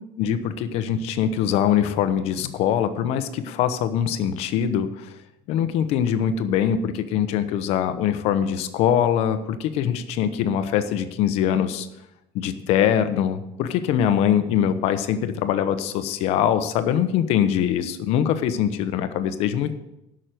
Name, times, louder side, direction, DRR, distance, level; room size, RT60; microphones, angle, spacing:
voice 1, 0.2-5.1 5.5-11.9 12.3-19.8, left 9 dB, 55° left, 10 dB, 1.0 m, -23 dB
11.0 x 6.3 x 7.8 m, 0.90 s
cardioid pair, 175°, 12 cm